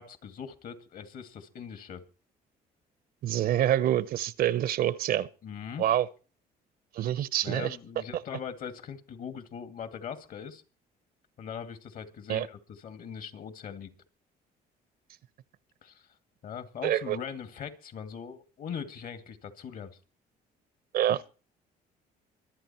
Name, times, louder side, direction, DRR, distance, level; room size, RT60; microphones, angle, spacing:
voice 1, 0.0-2.0 5.4-5.9 7.4-10.6 11.4-13.9 15.8-16.1 16.4-19.9, left 7 dB, 55° left, 2.3 m, -41 dB
voice 2, 3.2-5.3 5.8-6.1 6.9-7.8 12.3-12.5 16.8-17.2 20.9-21.2, right 12 dB, 60° right, 0.9 m, -26 dB
24.5 x 8.8 x 4.4 m
cardioid pair, 110°, 17 cm